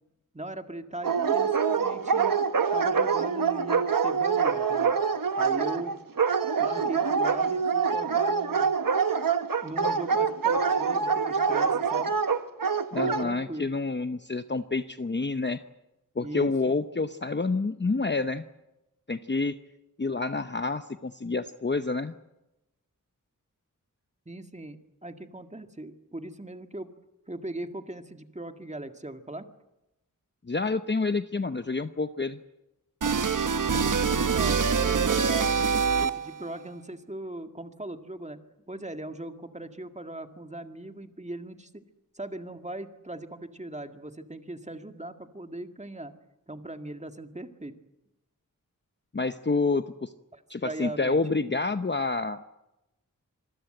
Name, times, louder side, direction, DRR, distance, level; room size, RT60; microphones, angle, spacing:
voice 1, 0.3-2.4 2.7-5.0 5.4-6.0 6.6-8.7 9.6-12.1 13.0-13.7 16.2-16.5 24.3-24.8 25.0-26.9 27.3-29.5 34.1-35.6 36.0-38.4 38.7-41.8 42.1-46.1 46.5-47.8 50.3-51.2, right 1 dB, 20° right, 7 dB, 2.0 m, -39 dB
Dog, 1.0-13.2, right 6 dB, 85° right, 1.3 m, -25 dB
voice 2, 12.9-15.6 16.2-18.4 19.1-19.6 20.0-22.1 30.4-32.4 49.1-50.1 50.5-52.4, left 3 dB, 35° left, 10 dB, 0.9 m, -28 dB
sound 1, 33.0-36.4, right 5 dB, 70° right, 1.0 m, -25 dB
26.5 x 21.0 x 7.9 m, 0.93 s
wide cardioid pair, 75°, 33 cm